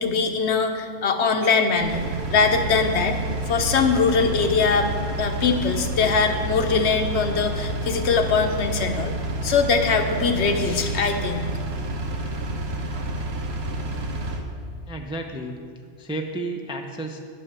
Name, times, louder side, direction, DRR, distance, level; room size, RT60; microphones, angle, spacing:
voice 1, 0.0-2.0 2.3-3.2 3.5-4.9 5.2-9.1 9.4-11.4, left 5 dB, 75° left, 6 dB, 1.1 m, -22 dB
Engine, 1.8-14.4, right 1 dB, 65° right, 1.1 m, -29 dB
voice 2, 14.9-15.6 16.0-17.2, right 2 dB, 10° right, 3 dB, 0.3 m, -32 dB
9.8 x 5.5 x 6.7 m, 2.1 s
omnidirectional pair, 1.2 m